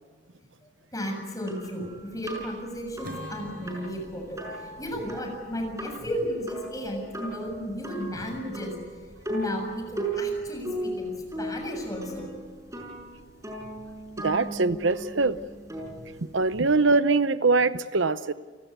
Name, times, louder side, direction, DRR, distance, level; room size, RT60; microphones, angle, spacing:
voice 1, 0.9-8.7 9.3-11.1 11.4-12.3 12.8-13.0 15.8-15.9 17.0-17.2, equal, 20° left, 3 dB, 7.1 m, -34 dB
sound 1, 1.5-16.8, right 1 dB, 15° right, 5.9 m, -37 dB
Acoustic guitar / Strum, 3.0-7.5, right 1 dB, 55° right, 5.8 m, -47 dB
voice 2, 14.2-15.4 16.3-18.3, right 3 dB, 80° right, 13 dB, 0.8 m, -23 dB
30.0 x 18.5 x 8.1 m, 1.5 s
head